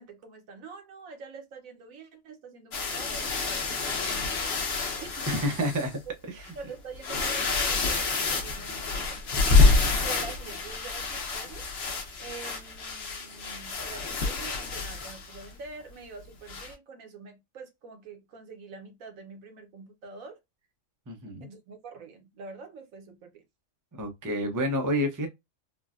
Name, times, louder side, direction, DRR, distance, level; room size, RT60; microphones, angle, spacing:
voice 1, 0.0-4.5 5.0-5.4 6.5-11.6 12.2-20.4 21.4-23.4, right 4 dB, 80° right, 1.2 m, -45 dB
sound 1, 2.7-5.9 6.4-6.5 6.9-15.5 16.5-16.7, left 3 dB, 55° left, 0.9 m, -27 dB
voice 2, 5.3-6.0 6.3-6.4 21.1-21.5 23.9-25.3, equal, 30° right, 0.3 m, -29 dB
3.8 x 2.2 x 2.4 m
omnidirectional pair, 1.4 m